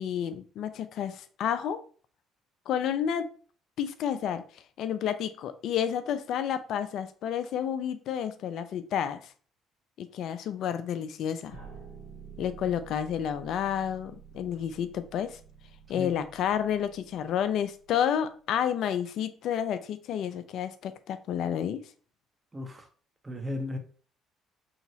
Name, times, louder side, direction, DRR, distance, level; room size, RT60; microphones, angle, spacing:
voice 1, 0.0-1.8 2.7-3.3 3.8-4.4 4.8-9.3 10.0-11.6 12.4-15.4 15.9-21.8, left 9 dB, 60° left, 11 dB, 0.3 m, -30 dB
sound 1, 11.5-18.4, right 6 dB, 85° right, 1.3 m, -50 dB
voice 2, 22.5-22.9 23.2-23.8, left 2 dB, 25° right, 5 dB, 0.6 m, -35 dB
2.9 x 2.8 x 2.6 m, 0.42 s
hypercardioid pair, 50°, 0 cm